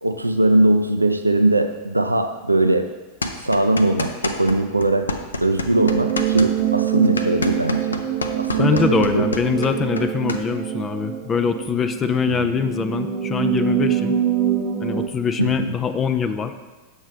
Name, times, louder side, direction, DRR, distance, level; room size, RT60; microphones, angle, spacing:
voice 1, 0.0-2.9 3.4-5.1 5.4-8.0 8.4-9.3 12.3-12.5 15.4-15.8, right 2 dB, 85° right, 7 dB, 0.4 m, -20 dB
sound 1, 3.2-4.6 4.8-10.4, left 2 dB, 75° left, 0.5 m, -27 dB
sound 2, 5.7-15.1, right 10 dB, 40° right, 0.8 m, -24 dB
voice 2, 8.6-14.1 14.8-16.5, left 6 dB, 25° left, 9 dB, 0.4 m, -23 dB
7.9 x 6.3 x 3.3 m, 1.2 s
figure-of-eight pair, 90°, 0 cm